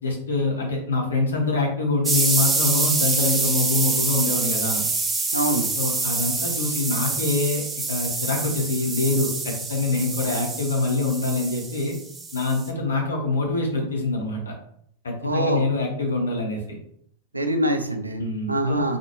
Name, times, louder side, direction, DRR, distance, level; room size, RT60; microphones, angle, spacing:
voice 1, 0.0-4.8 5.8-7.6 7.9-11.9 12.3-14.5 15.0-16.8 18.2-19.0, left 3 dB, 70° left, 1 dB, 1.0 m, -25 dB
sound 1, 2.0-12.7, right 3 dB, 15° right, 0.5 m, -26 dB
voice 2, 5.3-5.7 15.2-15.6 17.3-19.0, right 1 dB, 85° right, 5 dB, 0.5 m, -24 dB
3.9 x 2.5 x 3.0 m, 0.68 s
figure-of-eight pair, 90°, 0 cm